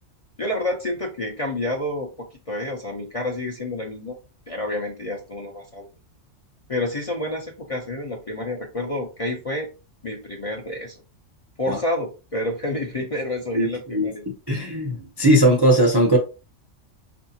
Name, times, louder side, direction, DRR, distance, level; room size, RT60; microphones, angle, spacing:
voice 1, 0.4-4.2 4.5-5.9 6.7-9.7 10.0-11.0 11.6-14.2, left 1 dB, 35° left, 0.6 m, -29 dB
voice 2, 13.5-14.1 14.5-16.2, right 1 dB, 30° right, 0.5 m, -19 dB
4.7 x 2.7 x 2.7 m
omnidirectional pair, 1.3 m